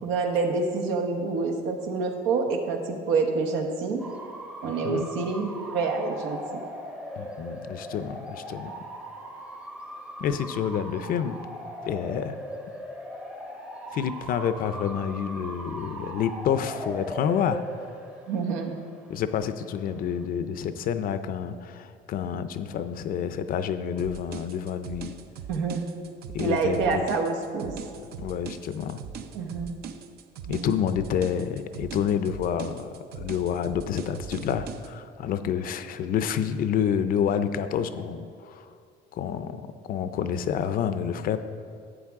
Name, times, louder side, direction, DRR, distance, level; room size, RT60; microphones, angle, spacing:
voice 1, 0.0-4.0 4.6-6.6 18.3-18.8 25.5-25.8 26.4-27.7 29.3-29.7 30.5-30.7, right 4 dB, 85° right, 2 dB, 1.2 m, -27 dB
Bark / Motor vehicle (road) / Siren, 4.0-20.3, equal, 5° right, 0.7 m, -39 dB
voice 2, 4.6-5.1 7.2-8.7 10.2-11.4 11.8-12.4 13.9-17.6 19.1-25.1 26.3-27.0 28.2-29.0 30.5-38.7 39.1-41.4, left 8 dB, 50° left, 11 dB, 0.5 m, -28 dB
sound 1, 24.0-34.9, right 7 dB, 55° right, 0.5 m, -41 dB
12.0 x 8.2 x 3.6 m, 2.3 s
cardioid pair, 140°, 19 cm